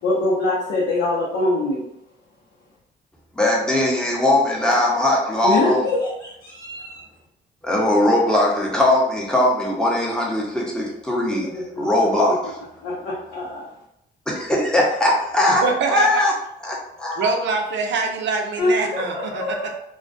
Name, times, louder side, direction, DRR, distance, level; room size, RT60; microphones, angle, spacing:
voice 1, 0.0-1.8 5.4-7.0 11.5-11.9 12.2-12.3 12.8-13.7 18.6-19.7, left 2 dB, 85° left, -6 dB, 0.7 m, -24 dB
voice 2, 3.4-5.8 7.6-11.5 11.8-12.4 14.3-16.3 16.6-17.3, left 1 dB, 5° left, -3 dB, 0.7 m, -20 dB
voice 3, 15.6-16.2 17.2-19.7, right 4 dB, 65° right, 3 dB, 0.5 m, -24 dB
2.2 x 2.1 x 2.5 m, 0.79 s
cardioid pair, 90°, 20 cm